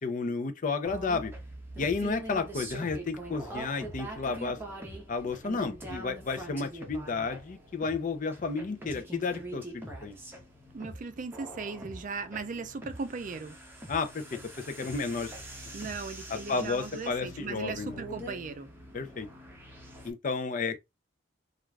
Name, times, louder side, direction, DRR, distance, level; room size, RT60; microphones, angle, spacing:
voice 1, 0.0-1.3 1.8-4.6 5.1-10.2 13.9-15.3 16.3-18.0 18.9-19.3 20.0-20.8, left 4 dB, 45° left, 0.5 m, -32 dB
sound 1, 0.8-20.1, right 1 dB, 10° right, 0.7 m, -44 dB
voice 2, 10.7-13.6 15.7-18.7, right 4 dB, 45° right, 0.4 m, -38 dB
2.4 x 2.2 x 3.2 m
head